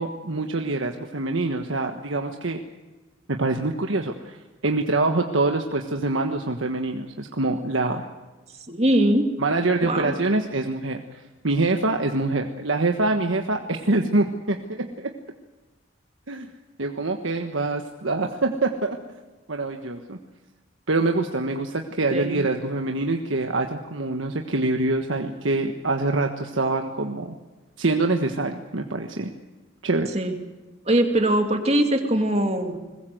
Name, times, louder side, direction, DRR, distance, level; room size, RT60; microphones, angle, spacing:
voice 1, 0.0-2.6 3.3-4.4 4.6-8.0 9.4-15.1 16.3-16.5 16.8-19.0 19.5-20.2 20.9-27.3 27.8-29.3 29.8-30.1, right 2 dB, 80° right, 4 dB, 1.4 m, -25 dB
voice 2, 8.7-9.3 9.8-10.2 22.1-22.4 30.1-30.4 30.9-32.8, right 1 dB, 35° right, 5 dB, 2.6 m, -21 dB
22.0 x 21.0 x 8.0 m, 1.2 s
head